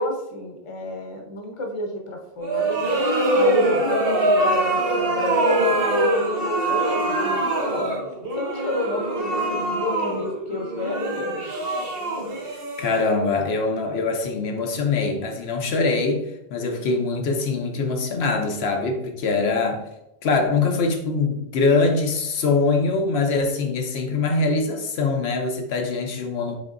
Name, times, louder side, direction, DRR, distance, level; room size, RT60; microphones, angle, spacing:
voice 1, 0.0-2.8 3.3-8.0 8.3-11.4, left 1 dB, 35° left, 0.7 m, -31 dB
sound 1, 2.4-13.4, right 1 dB, 70° right, 1.1 m, -23 dB
voice 2, 12.4-19.9 20.2-26.5, left 3 dB, 80° left, 0.9 m, -23 dB
5.2 x 3.7 x 2.5 m
omnidirectional pair, 1.0 m